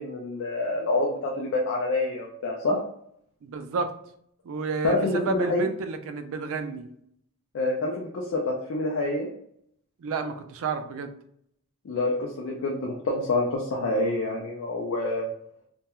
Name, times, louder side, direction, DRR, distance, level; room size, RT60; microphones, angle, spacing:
voice 1, 0.0-2.8 4.8-5.7 7.5-9.3 11.8-15.3, left 2 dB, 60° left, -1 dB, 0.4 m, -27 dB
voice 2, 3.4-3.9 4.5-6.9 10.0-11.1, right 4 dB, 60° right, 8 dB, 0.3 m, -30 dB
2.3 x 2.2 x 2.9 m, 0.69 s
head